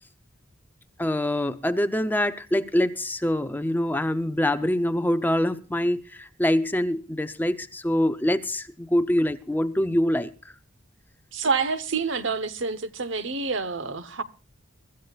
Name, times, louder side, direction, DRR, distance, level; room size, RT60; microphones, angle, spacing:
voice 1, 1.0-10.5, left 1 dB, 10° left, 0.6 m, -25 dB
voice 2, 11.3-14.2, right 4 dB, 60° right, 1.1 m, -27 dB
23.5 x 14.0 x 2.4 m
head